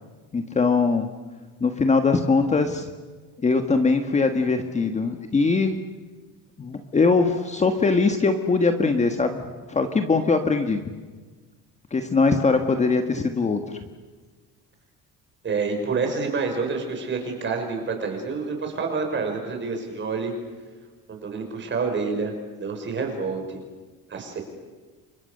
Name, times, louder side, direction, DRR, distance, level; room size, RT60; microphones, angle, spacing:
voice 1, 0.3-1.1 1.6-2.9 3.4-5.8 6.6-9.4 9.7-10.9 11.9-13.8, left 4 dB, 20° left, 6 dB, 1.5 m, -21 dB
voice 2, 15.4-20.3 21.1-22.3 22.6-23.6 24.1-24.4, right 4 dB, 30° right, 3 dB, 6.2 m, -28 dB
30.0 x 25.0 x 6.7 m, 1.4 s
cardioid pair, 165°, 36 cm